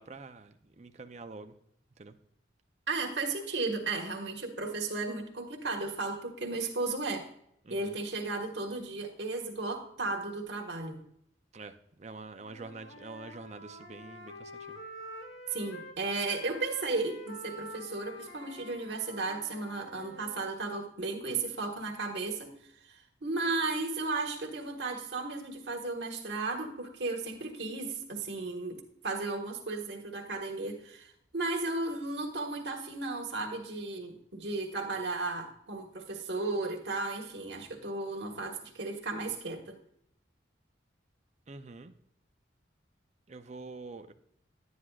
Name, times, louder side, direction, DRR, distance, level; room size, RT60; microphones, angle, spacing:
voice 1, 0.0-1.6 2.0-2.2 7.6-8.0 11.5-14.8 41.5-41.9 43.3-44.1, right 3 dB, 35° right, 8 dB, 0.6 m, -46 dB
voice 2, 2.9-7.3 7.7-11.0 15.5-22.5 22.9-39.8, right 3 dB, 60° right, 1 dB, 1.6 m, -35 dB
Wind instrument woodwind instrument, 12.4-16.0 16.3-20.5, equal, 80° left, 1.4 m, -47 dB
11.5 x 9.5 x 2.4 m, 0.70 s
head